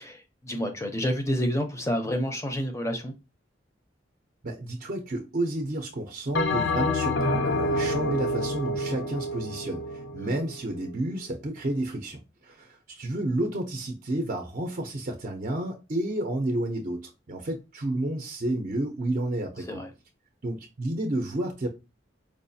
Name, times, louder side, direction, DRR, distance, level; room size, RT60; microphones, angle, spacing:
voice 1, 0.0-3.1 10.2-10.4 19.7-19.9, equal, 15° left, 0.5 m, -29 dB
voice 2, 4.4-19.8 20.4-21.7, right 1 dB, 45° right, 0.5 m, -31 dB
Bell, 6.3-10.9, left 1 dB, 90° left, 0.6 m, -28 dB
4.6 x 2.4 x 2.6 m
head